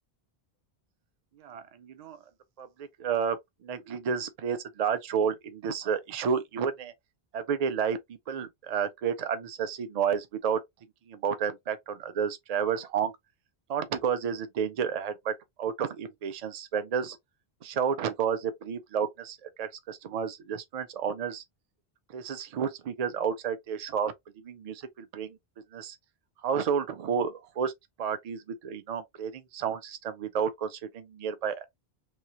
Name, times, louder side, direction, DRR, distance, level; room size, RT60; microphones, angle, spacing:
voice 1, 1.4-2.2 2.6-6.9 7.3-10.6 11.1-13.1 13.7-17.2 17.6-21.4 22.1-25.4 25.7-26.0 26.4-27.7 28.0-31.6, right 7 dB, 50° right, 0.5 m, -31 dB
3.1 x 2.3 x 2.7 m
omnidirectional pair, 1.1 m